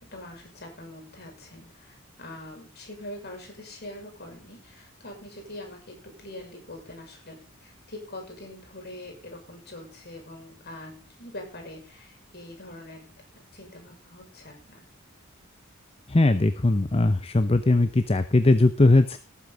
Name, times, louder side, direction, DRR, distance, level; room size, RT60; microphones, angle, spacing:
voice 1, 0.0-14.8, left 1 dB, 50° left, 3 dB, 6.0 m, -43 dB
voice 2, 16.1-19.2, left 2 dB, 30° left, 11 dB, 0.7 m, -20 dB
18.5 x 8.5 x 4.0 m, 0.33 s
head